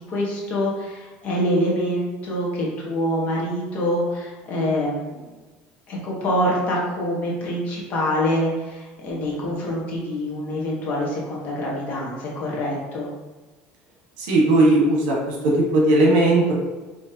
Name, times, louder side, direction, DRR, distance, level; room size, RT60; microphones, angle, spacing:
voice 1, 0.1-5.4 5.9-13.1, equal, 35° left, -4 dB, 1.2 m, -25 dB
voice 2, 14.2-16.5, right 2 dB, 80° right, -2 dB, 1.4 m, -18 dB
5.0 x 3.1 x 2.8 m, 1.2 s
cardioid pair, 175°, 5 cm